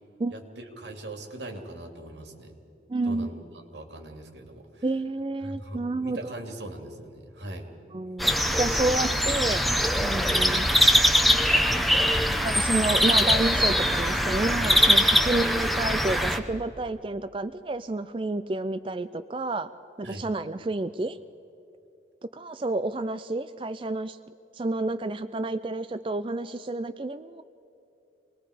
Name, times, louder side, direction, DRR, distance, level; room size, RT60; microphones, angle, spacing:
voice 1, 0.3-2.5 3.1-3.3 3.7-4.8 5.4-7.7 20.0-20.3, right 1 dB, 85° right, 4 dB, 2.5 m, -40 dB
voice 2, 2.9-3.3 4.8-6.3 7.9-8.3 8.6-9.7 10.0-10.7 12.4-19.7 20.0-21.2 22.3-24.2 24.5-27.4, right 2 dB, 30° right, 11 dB, 0.4 m, -30 dB
sound 1, 8.2-16.4, equal, ahead, 0.8 m, -22 dB
26.0 x 20.0 x 5.0 m, 2.8 s
head